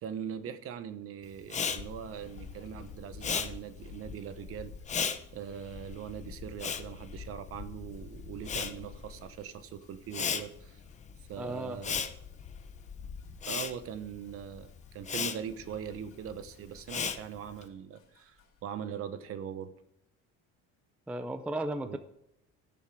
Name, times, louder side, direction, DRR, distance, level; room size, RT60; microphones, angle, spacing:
voice 1, 0.0-4.7 5.3-10.8 11.3-12.1 13.5-14.7 14.9-19.7 21.8-22.0, right 8 dB, 45° right, 12 dB, 1.0 m, -41 dB
Respiratory sounds, 1.4-7.9 8.2-17.6, left 7 dB, 25° left, 0.8 m, -37 dB
sound 1, 1.7-17.6 18.0-18.6, left 6 dB, 45° left, 2.7 m, -49 dB
voice 2, 11.4-11.8 21.1-22.0, right 1 dB, 5° right, 9 dB, 0.4 m, -35 dB
16.5 x 7.3 x 4.8 m, 0.81 s
cardioid pair, 175°, 31 cm